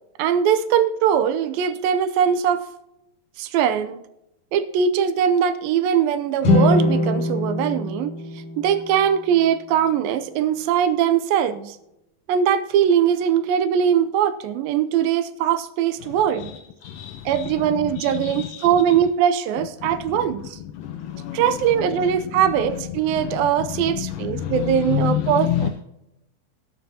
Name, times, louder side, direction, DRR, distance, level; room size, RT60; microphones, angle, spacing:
voice 1, 0.2-2.6 3.4-4.0 4.5-8.1 8.6-11.8 12.3-16.5 17.3-20.6 21.3-25.7, right 8 dB, 80° right, 11 dB, 2.3 m, -21 dB
sound 1, 6.4-9.7, left 1 dB, 45° left, 2.8 m, -23 dB
voice 2, 16.8-17.5 17.8-18.7 20.8-21.4 23.7-25.7, left 10 dB, 75° left, 6 dB, 2.0 m, -27 dB
19.0 x 7.6 x 2.8 m, 0.86 s
omnidirectional pair, 4.4 m